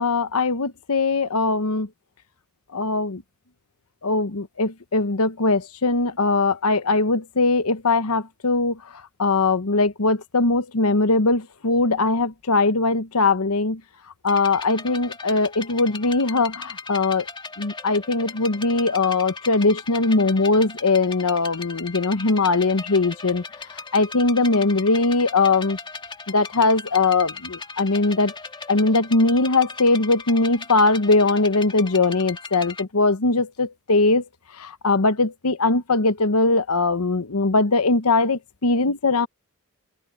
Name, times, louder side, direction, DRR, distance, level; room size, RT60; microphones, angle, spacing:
voice 1, 0.0-1.9 2.7-3.2 4.0-8.8 9.2-13.8 14.2-17.2 17.6-23.4 23.9-25.8 26.3-28.3 28.7-34.2 34.6-39.3, left 3 dB, 85° left, 1.1 m, -20 dB
sound 1, 14.3-32.8, left 4 dB, 20° left, 1.9 m, -38 dB
open air
head